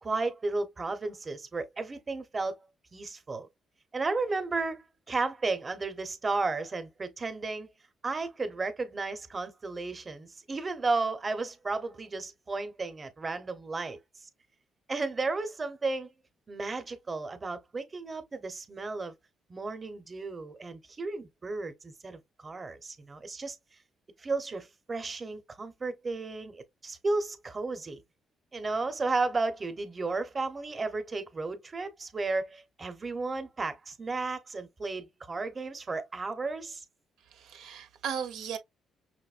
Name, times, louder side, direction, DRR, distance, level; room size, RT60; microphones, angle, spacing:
voice 1, 0.0-2.6 2.9-3.5 3.9-7.7 8.0-14.0 14.9-16.1 16.5-19.1 19.5-23.6 24.2-28.0 28.5-36.8, right 3 dB, 30° right, 1.0 m, -33 dB
voice 2, 37.3-38.6, right 8 dB, 85° right, 1.0 m, -36 dB
5.8 x 2.6 x 2.5 m
cardioid pair, 90°, 0 cm